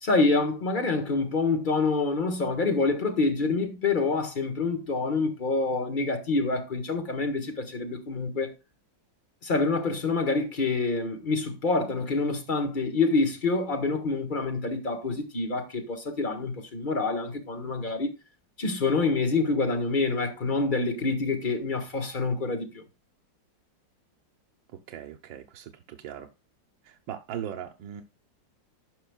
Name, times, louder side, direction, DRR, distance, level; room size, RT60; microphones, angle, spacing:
voice 1, 0.0-8.5 9.4-18.1 18.6-22.8, left 3 dB, 30° left, 1.5 m, -27 dB
voice 2, 24.7-26.3 26.8-28.0, right 9 dB, 85° right, 1.5 m, -39 dB
15.5 x 5.5 x 2.3 m
omnidirectional pair, 2.0 m